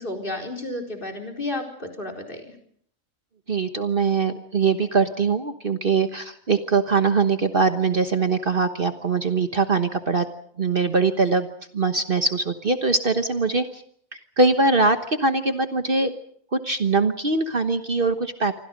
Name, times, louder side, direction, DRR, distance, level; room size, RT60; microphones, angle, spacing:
voice 1, 0.0-2.4, left 2 dB, 40° left, 7 dB, 4.4 m, -32 dB
voice 2, 3.5-10.3 10.6-11.5 11.7-13.8 14.4-16.1 16.5-18.6, right 4 dB, 45° right, 8 dB, 1.4 m, -22 dB
27.5 x 25.0 x 5.2 m, 0.62 s
omnidirectional pair, 1.4 m